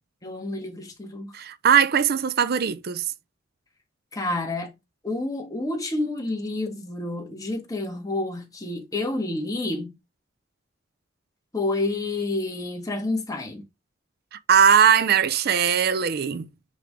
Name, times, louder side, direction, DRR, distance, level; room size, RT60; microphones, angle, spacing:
voice 1, 0.2-1.3 4.1-4.7 5.0-9.9 11.5-13.6, left 2 dB, 20° left, 1.7 m, -29 dB
voice 2, 1.3-3.0 14.5-16.5, right 7 dB, 50° right, 0.5 m, -20 dB
9.2 x 3.5 x 3.6 m
head